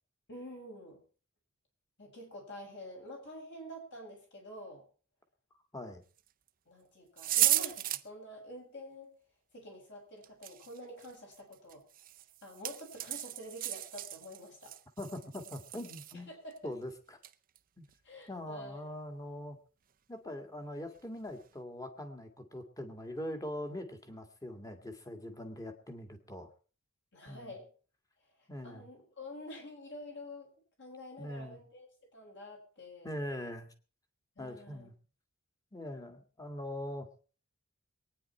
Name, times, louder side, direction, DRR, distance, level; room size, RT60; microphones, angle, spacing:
voice 1, 0.3-1.0 2.0-4.8 6.7-9.1 9.5-11.8 12.4-14.7 16.1-16.6 18.0-18.8 27.1-27.7 28.6-30.5 30.8-33.2 34.4-34.9, left 1 dB, 55° left, 0 dB, 6.9 m, -48 dB
sound 1, 6.2-6.3 7.2-8.0 10.2-16.1 16.5-16.6 17.2-17.6 17.9-18.0 20.9-21.0 21.3-21.4, right 14 dB, 40° right, 0.6 m, -35 dB
voice 2, 15.0-16.3 16.6-17.2 17.8-17.9 18.3-19.6 20.1-26.5 27.3-27.5 28.5-28.9 31.2-31.6 33.0-33.7 34.4-34.9 35.7-37.1, left 1 dB, 15° left, 6 dB, 1.9 m, -42 dB
23.0 x 9.8 x 4.4 m, 0.39 s
head